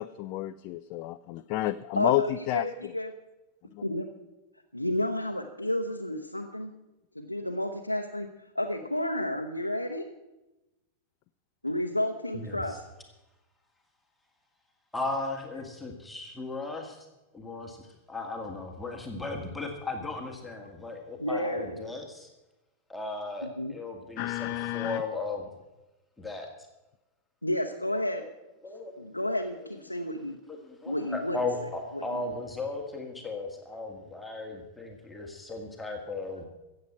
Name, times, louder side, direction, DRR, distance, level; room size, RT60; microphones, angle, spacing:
voice 1, 0.0-2.9 24.2-25.0, left 16 dB, 45° left, 12 dB, 0.4 m, -30 dB
voice 2, 2.0-3.1 3.8-4.0 4.7-6.7 7.1-10.1 11.6-12.8 21.2-21.9 23.4-23.8 27.4-28.3 29.0-30.4 30.9-31.4 31.9-32.3, left 1 dB, 85° left, 2 dB, 0.8 m, -31 dB
voice 3, 12.3-12.8 14.9-17.1 17.3-22.3 22.9-25.4 26.2-26.5 28.6-29.1 30.5-36.5, left 3 dB, 5° left, 1 dB, 1.9 m, -36 dB
15.5 x 7.9 x 7.5 m, 1.0 s
figure-of-eight pair, 90°, 0 cm